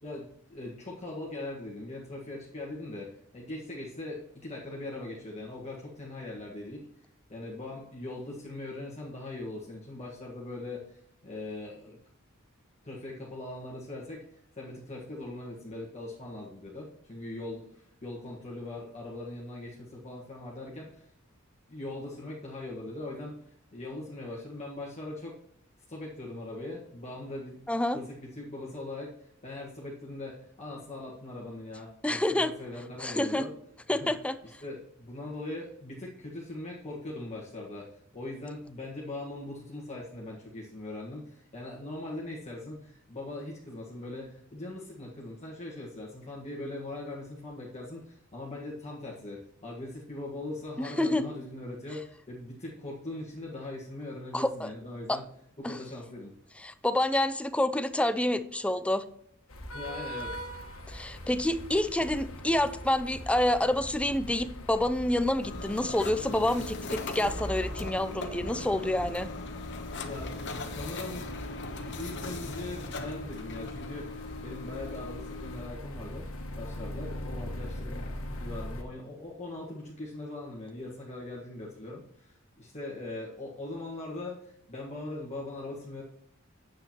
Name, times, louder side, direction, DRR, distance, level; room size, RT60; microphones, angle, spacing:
voice 1, 0.0-6.9 7.3-12.0 12.8-14.2 14.6-21.1 21.7-23.4 23.7-25.4 25.9-27.7 27.9-33.5 34.0-34.1 34.4-55.3 55.6-56.3 59.7-60.5 70.0-71.3 71.9-76.3 76.6-86.0, left 2 dB, 35° left, -4 dB, 1.6 m, -41 dB
voice 2, 27.7-28.0 32.0-32.5 33.0-33.5 33.9-34.4 50.8-51.2 54.3-54.7 55.1-55.2 55.6-55.8 56.6-59.0 60.9-69.3, left 1 dB, 5° left, 12 dB, 0.5 m, -28 dB
sound 1, 59.5-78.8, equal, 75° left, 1.4 m, -41 dB
sound 2, 65.4-75.7, left 3 dB, 60° left, 1.0 m, -40 dB
9.6 x 7.8 x 3.0 m, 0.72 s
head